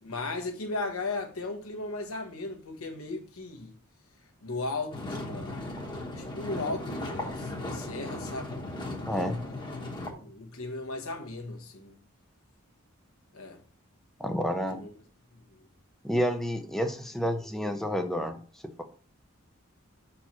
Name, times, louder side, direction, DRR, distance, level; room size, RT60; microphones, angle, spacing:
voice 1, 0.0-3.7 4.4-5.6 6.2-8.6 9.5-9.6 9.9-12.0 13.3-13.6 14.7-14.9, left 3 dB, 80° left, 1.2 m, -36 dB
sound 1, 4.9-10.1, left 1 dB, 20° left, 1.1 m, -37 dB
voice 2, 9.1-9.4 14.2-14.8 16.0-18.4, equal, ahead, 0.5 m, -29 dB
5.9 x 4.5 x 4.3 m
head